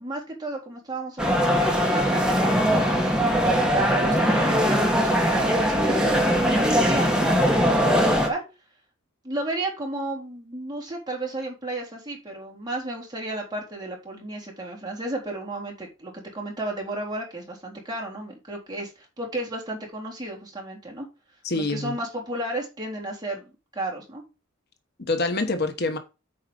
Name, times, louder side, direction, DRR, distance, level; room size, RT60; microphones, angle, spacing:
voice 1, 0.0-3.2 3.7-7.3 7.6-8.4 9.2-21.1 21.5-24.2, right 2 dB, 20° right, 3.8 m, -33 dB
sound 1, 1.2-8.3, equal, 5° right, 1.8 m, -21 dB
voice 2, 21.4-21.9 25.0-26.0, left 2 dB, 50° left, 1.1 m, -26 dB
8.9 x 4.9 x 5.3 m
head